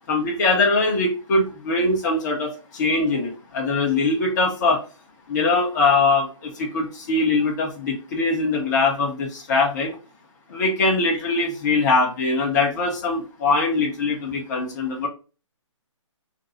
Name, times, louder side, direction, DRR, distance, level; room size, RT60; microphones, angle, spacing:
voice 1, 0.1-4.8 5.3-10.0 10.5-15.1, left 3 dB, 35° left, -1 dB, 0.9 m, -22 dB
2.6 x 2.3 x 3.9 m, 0.33 s
hypercardioid pair, 155°, 17 cm